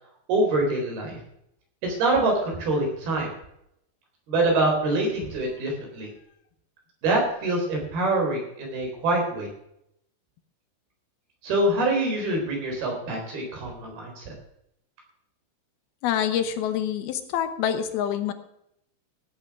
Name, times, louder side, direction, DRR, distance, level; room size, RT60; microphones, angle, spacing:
voice 1, 0.3-1.2 1.8-3.3 4.3-6.1 7.0-9.5 11.4-14.2, right 2 dB, 70° right, 1 dB, 5.8 m, -25 dB
voice 2, 16.0-18.3, left 9 dB, 75° left, 9 dB, 2.7 m, -26 dB
16.5 x 8.5 x 5.9 m, 0.77 s
omnidirectional pair, 4.7 m